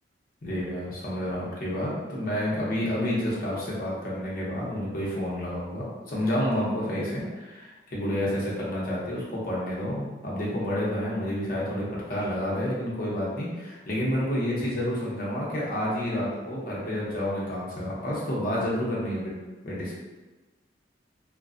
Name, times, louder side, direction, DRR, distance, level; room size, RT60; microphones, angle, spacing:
voice 1, 0.4-19.3 19.6-19.9, equal, 50° left, -6 dB, 0.7 m, -29 dB
2.5 x 2.2 x 2.4 m, 1.2 s
head